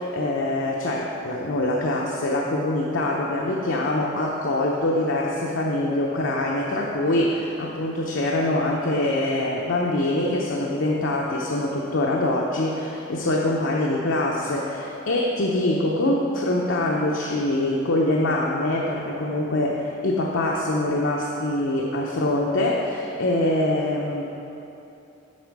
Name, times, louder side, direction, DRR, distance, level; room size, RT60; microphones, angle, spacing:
voice 1, 0.0-24.2, left 1 dB, 70° left, -2 dB, 0.7 m, -24 dB
8.4 x 5.9 x 4.7 m, 2.9 s
head